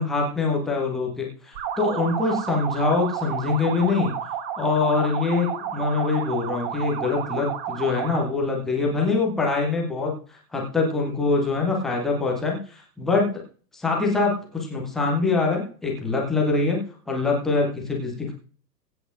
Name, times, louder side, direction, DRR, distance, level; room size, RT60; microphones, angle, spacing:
voice 1, 0.0-4.2 4.6-13.3 13.7-16.8 17.1-18.3, left 3 dB, ahead, -2 dB, 0.4 m, -24 dB
sound 1, 1.6-8.4, right 8 dB, 35° right, 1.8 m, -31 dB
23.0 x 7.8 x 2.5 m, 0.42 s
figure-of-eight pair, 105°, 50 cm